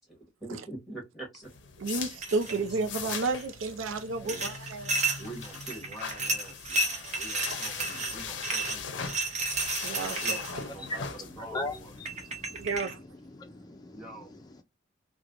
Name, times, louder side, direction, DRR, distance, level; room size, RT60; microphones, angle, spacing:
voice 1, 0.1-1.5 4.0-4.8 5.2-9.2 10.2-11.9 13.9-14.3, right 2 dB, ahead, 1.1 m, -45 dB
sound 1, 1.4-12.8, left 6 dB, 65° left, 0.5 m, -41 dB
voice 2, 1.8-5.0 9.8-10.4 12.6-12.9, right 3 dB, 80° right, 0.5 m, -31 dB
sound 2, 2.2-2.6 3.0-3.4 4.3-10.6 11.7-11.8 12.0-12.9, right 2 dB, 35° right, 0.6 m, -32 dB
voice 3, 10.6-14.6, left 2 dB, 20° left, 0.4 m, -41 dB
3.2 x 2.2 x 2.4 m
head